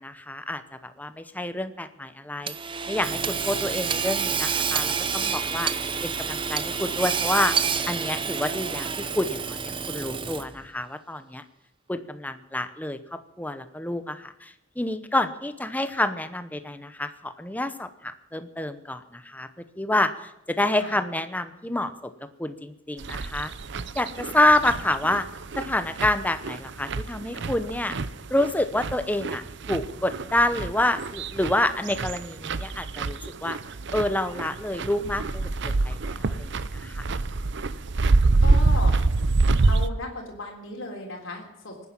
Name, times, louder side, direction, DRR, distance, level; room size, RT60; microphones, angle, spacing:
voice 1, 0.0-2.5 2.9-5.7 6.0-7.6 7.9-11.4 11.9-13.0 13.4-19.5 19.8-22.1 22.4-23.5 24.0-25.3 25.6-28.0 28.3-29.4 29.7-33.6 33.9-37.0, left 1 dB, 10° left, 10 dB, 0.8 m, -28 dB
Hammer / Sawing, 2.5-10.6, right 6 dB, 25° right, 0.8 m, -28 dB
sound 1, 23.0-39.9, right 3 dB, 60° right, 0.7 m, -26 dB
voice 2, 38.4-38.9 39.6-41.9, left 2 dB, 70° left, 0 dB, 3.6 m, -36 dB
19.0 x 9.8 x 7.5 m, 0.88 s
head